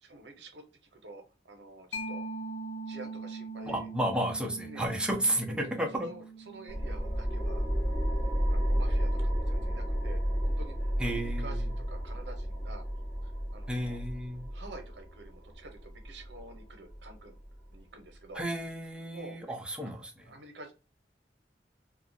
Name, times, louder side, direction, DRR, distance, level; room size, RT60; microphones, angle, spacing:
voice 1, 0.0-2.2 2.9-3.9 4.7-4.9 5.5-7.6 8.4-12.9 13.2-14.0 14.5-17.4 17.7-18.5 19.1-19.6 20.2-20.7, right 2 dB, 85° right, 0.7 m, -49 dB
Mallet percussion, 1.9-9.2, right 3 dB, 85° left, 0.4 m, -43 dB
voice 2, 3.7-6.1 11.0-11.6 13.7-14.5 18.4-20.3, right 1 dB, 5° right, 0.5 m, -32 dB
sound 1, 6.7-17.7, equal, 20° left, 1.2 m, -32 dB
2.4 x 2.3 x 2.5 m
head